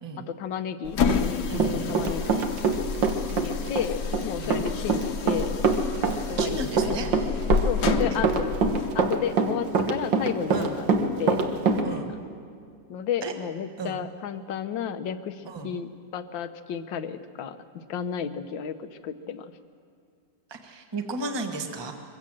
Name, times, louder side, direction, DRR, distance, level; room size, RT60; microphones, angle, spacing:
voice 1, 0.3-2.5 3.3-5.6 6.3-6.9 7.7-8.5 8.9-11.4 11.7-12.2 12.9-19.5, left 8 dB, 85° left, 11 dB, 1.6 m, -33 dB
sound 1, 0.8-8.9, left 6 dB, 65° left, 1.6 m, -30 dB
Run, 1.1-2.8 3.0-11.8, right 4 dB, 80° right, 2.1 m, -24 dB
voice 2, 1.5-2.0 4.4-4.6 6.4-7.1 10.5-10.7 11.8-12.1 13.2-13.3 13.8-14.0 15.4-15.7 20.5-21.9, right 3 dB, 15° right, 4 dB, 1.3 m, -34 dB
23.5 x 16.0 x 7.6 m, 2.3 s
omnidirectional pair, 2.0 m